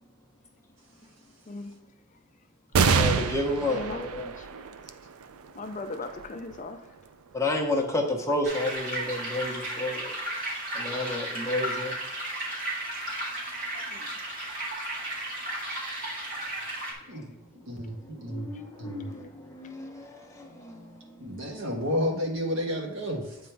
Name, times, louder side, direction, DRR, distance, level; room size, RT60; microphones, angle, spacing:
sound 1, 2.7-9.6 10.2-10.3 11.5-12.0, right 5 dB, 85° right, 0.5 m, -30 dB
voice 1, 2.9-4.3 7.3-10.1 10.7-11.9 18.2-20.8, left 1 dB, 15° left, 1 dB, 1.0 m, -31 dB
voice 2, 3.7-4.0 4.4-4.5 5.6-6.9 13.9-14.1 17.1-17.2, left 3 dB, 35° left, 8 dB, 0.4 m, -38 dB
sound 2, 8.4-16.9, right 1 dB, 40° right, 2.1 m, -34 dB
voice 3, 17.7-18.5 18.8-19.1 21.2-23.4, equal, 65° right, 1 dB, 1.5 m, -31 dB
8.5 x 3.7 x 4.6 m, 0.99 s
head